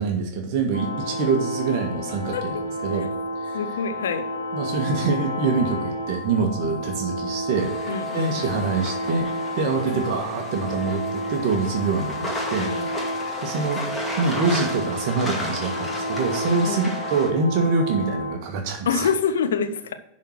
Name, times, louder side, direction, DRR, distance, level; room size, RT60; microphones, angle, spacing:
voice 1, 0.0-3.1 3.4-3.6 4.5-9.3 9.5-12.7 13.4-13.8 14.2-19.1, right 4 dB, 45° right, 3 dB, 1.5 m, -25 dB
sound 1, 0.7-18.4, left 1 dB, 80° left, 1.6 m, -31 dB
voice 2, 3.5-4.2 7.9-8.5 9.8-10.0 12.6-12.9 16.6-16.8 18.9-19.9, left 6 dB, 65° left, 9 dB, 0.9 m, -26 dB
sound 2, 7.6-17.3, equal, 10° left, 2.2 m, -34 dB
11.0 x 4.3 x 6.4 m, 0.84 s
figure-of-eight pair, 90°, 0 cm